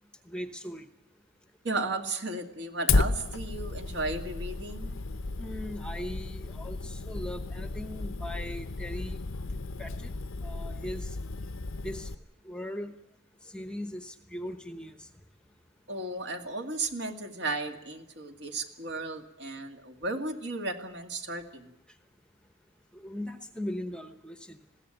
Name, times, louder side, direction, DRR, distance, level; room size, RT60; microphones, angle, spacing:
voice 1, 0.3-0.9 5.4-9.2 9.8-10.1 10.4-11.2 11.8-12.1 12.4-12.9 13.4-15.1 22.9-24.6, left 1 dB, 5° left, 8 dB, 1.0 m, -39 dB
voice 2, 1.6-5.0 15.9-21.7, right 2 dB, 55° right, 4 dB, 2.1 m, -34 dB
Fire, 2.9-12.1, left 3 dB, 65° left, 0.7 m, -33 dB
21.0 x 16.0 x 9.0 m, 0.86 s
head